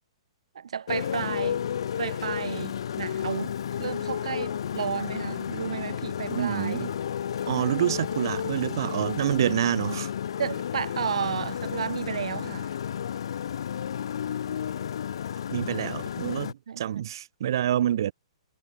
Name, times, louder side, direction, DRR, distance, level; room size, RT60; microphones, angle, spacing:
voice 1, 0.5-1.7 2.0-6.9 10.4-12.8 16.7-17.0, right 7 dB, 75° right, 7.2 m, -32 dB
Motorcycle, 0.9-16.5, left 9 dB, 55° left, 3.4 m, -32 dB
voice 2, 6.3-6.9 7.5-10.1 15.5-18.1, right 11 dB, 45° right, 4.3 m, -27 dB
hypercardioid pair, 180°, 3 cm